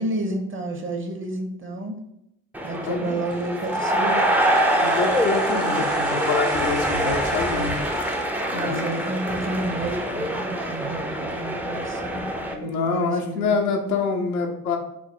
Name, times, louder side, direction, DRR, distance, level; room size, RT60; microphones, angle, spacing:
voice 1, 0.0-2.0 2.6-4.4 8.5-12.3 12.6-13.6, right 2 dB, 30° right, 5 dB, 0.8 m, -30 dB
sound 1, 2.5-12.5, right 1 dB, 5° right, 0.4 m, -24 dB
voice 2, 2.8-3.2 4.7-7.8 8.5-9.0 12.5-14.8, left 4 dB, 90° left, 2 dB, 0.6 m, -26 dB
sound 2, 3.1-10.4 10.7-10.8, right 4 dB, 85° right, 0.6 m, -46 dB
sound 3, 3.2-3.8 4.2-4.9 5.3-6.0 6.5-7.1 7.5-8.1 8.6-9.2 9.6-10.3 10.8-11.4, right 4 dB, 65° right, 1.3 m, -46 dB
4.6 x 2.0 x 3.6 m, 0.81 s
hypercardioid pair, 45°, 44 cm